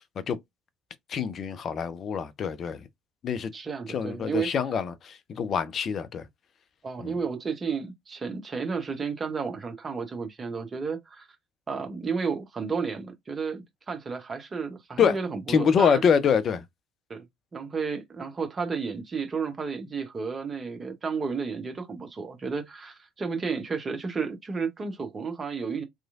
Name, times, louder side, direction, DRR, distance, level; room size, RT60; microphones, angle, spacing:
voice 1, 1.1-2.8 3.2-3.5 3.9-6.3 7.0-7.1 15.0-15.2 15.5-16.6, left 7 dB, 40° left, 0.4 m, -25 dB
voice 2, 3.5-4.5 6.8-11.3 11.7-16.0 17.1-17.2 17.5-25.8, right 5 dB, 25° right, 0.8 m, -32 dB
2.9 x 2.4 x 2.4 m
figure-of-eight pair, 60°, 0 cm